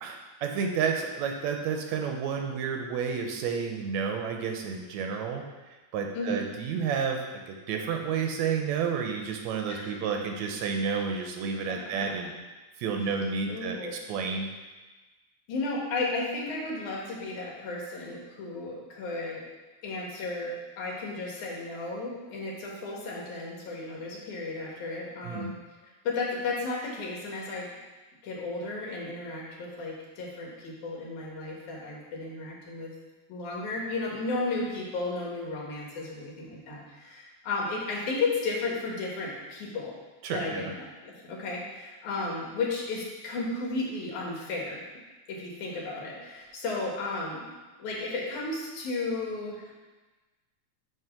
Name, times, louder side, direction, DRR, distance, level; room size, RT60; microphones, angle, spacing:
voice 1, 0.0-5.4 5.9-12.3 12.8-13.8 14.1-14.5 25.3-25.5 40.2-40.7, right 6 dB, 80° right, 3 dB, 1.9 m, -30 dB
voice 2, 6.1-6.5 9.7-9.9 12.2-12.3 13.5-14.0 15.5-19.4 19.8-25.5 26.0-27.7 28.2-32.9 33.3-39.9 40.3-44.8 45.3-47.4 47.8-49.7, left 3 dB, 85° left, -3 dB, 2.9 m, -34 dB
9.2 x 3.2 x 5.8 m, 1.2 s
omnidirectional pair, 3.4 m